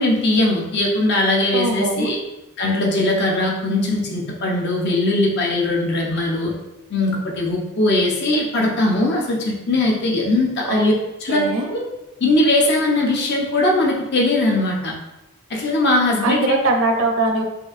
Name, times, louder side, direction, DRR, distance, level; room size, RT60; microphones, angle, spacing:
voice 1, 0.0-2.2 2.6-6.5 6.9-10.9 11.2-11.4 11.7-11.8 12.2-14.9 15.5-16.6, left 2 dB, 55° left, -1 dB, 0.7 m, -20 dB
voice 2, 1.5-2.1 10.7-10.8 11.3-11.7 16.2-17.4, right 2 dB, 75° right, 3 dB, 0.6 m, -21 dB
4.5 x 2.6 x 2.5 m, 0.97 s
head